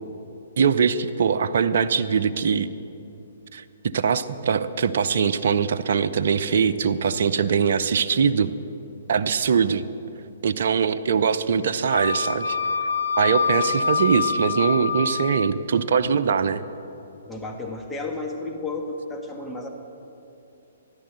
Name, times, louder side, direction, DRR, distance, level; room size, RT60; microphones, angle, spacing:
voice 1, 0.6-2.7 3.5-8.5 9.1-9.8 10.4-12.6 13.2-16.6, right 6 dB, 60° right, 9 dB, 0.7 m, -22 dB
Wind instrument woodwind instrument, 11.9-15.5, left 5 dB, 80° left, 1.0 m, -25 dB
voice 2, 17.2-19.7, left 2 dB, 10° left, 1 dB, 1.7 m, -32 dB
15.0 x 11.5 x 8.0 m, 2.9 s
figure-of-eight pair, 130°, 0 cm